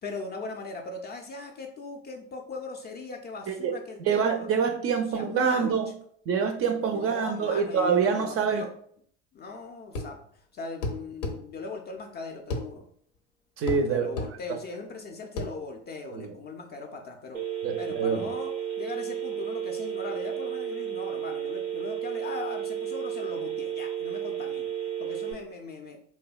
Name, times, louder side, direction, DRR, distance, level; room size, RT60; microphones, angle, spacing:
voice 1, 0.0-4.5 5.1-5.8 6.9-8.7 9.3-10.2 10.5-12.8 13.9-17.4 17.8-24.7 25.0-26.0, left 4 dB, 30° left, 2 dB, 0.3 m, -39 dB
voice 2, 4.0-5.9 6.3-8.7 13.6-14.1 16.1-16.3 17.6-18.3, right 6 dB, 40° right, 6 dB, 0.4 m, -26 dB
sound 1, 9.9-10.2 10.8-11.4 12.5-12.7 13.7-13.9 14.2-14.3 15.4-15.5, left 2 dB, 85° left, 0.5 m, -31 dB
Telephone, 17.3-25.3, right 10 dB, 85° right, 0.6 m, -33 dB
2.7 x 2.2 x 2.3 m, 0.62 s
hypercardioid pair, 60°, 38 cm